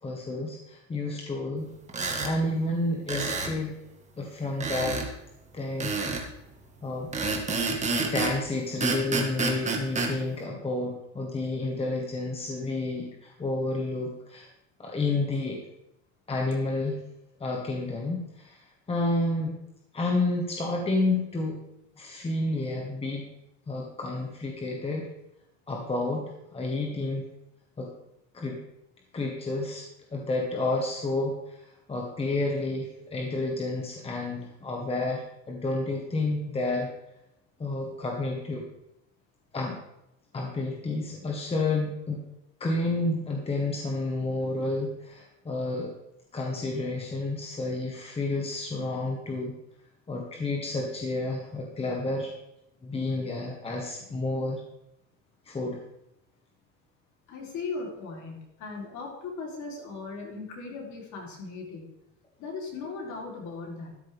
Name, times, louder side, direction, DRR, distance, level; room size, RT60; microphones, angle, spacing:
voice 1, 0.0-1.7 2.0-3.7 4.2-5.0 5.5-6.0 6.8-7.1 7.9-14.5 14.8-15.6 16.3-17.0 17.4-18.6 18.9-19.6 19.9-21.6 22.0-23.2 23.7-25.1 25.7-27.2 27.8-27.9 28.3-28.6 29.1-29.8 30.1-31.6 31.9-36.9 37.6-38.6 39.5-39.8 40.3-42.2 42.6-45.9 46.3-49.5 50.1-52.3 52.8-54.6 55.5-55.8, left 2 dB, 15° left, 0 dB, 1.5 m, -30 dB
sound 1, 1.9-2.3 3.1-3.6 4.6-5.1 5.8-6.3 7.1-8.4 8.8-10.1, right 3 dB, 20° right, 1.8 m, -28 dB
voice 2, 57.3-61.9 62.4-64.0, left 4 dB, 45° left, -1 dB, 3.8 m, -38 dB
13.0 x 10.5 x 3.6 m, 0.86 s
supercardioid pair, 135°, 39 cm